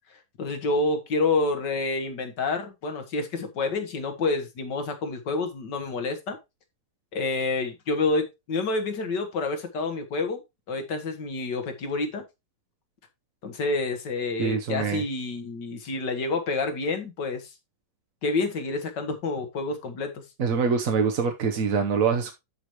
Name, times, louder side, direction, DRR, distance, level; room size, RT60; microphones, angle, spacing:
voice 1, 0.4-6.4 7.1-10.4 10.7-12.2 13.4-17.5 18.2-20.2, left 3 dB, 65° left, 2.1 m, -28 dB
voice 2, 14.4-15.0 20.4-22.3, right 5 dB, 50° right, 1.2 m, -24 dB
13.0 x 5.0 x 3.1 m
omnidirectional pair, 2.1 m